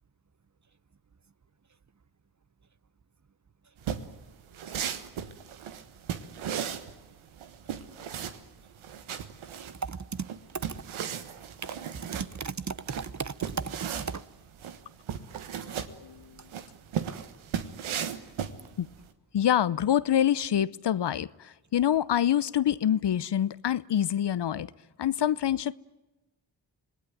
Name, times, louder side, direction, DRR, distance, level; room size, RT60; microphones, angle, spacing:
sound 1, 3.8-19.1, right 8 dB, 90° right, 1.5 m, -36 dB
voice 1, 9.8-10.3 10.7-10.8 11.6-11.8 12.1-14.2, right 5 dB, 35° right, 1.1 m, -35 dB
voice 2, 15.6-16.4 18.8-18.9 19.3-24.7 25.0-25.7, left 10 dB, 60° left, 0.8 m, -26 dB
26.0 x 19.5 x 9.3 m
supercardioid pair, 40°, 47 cm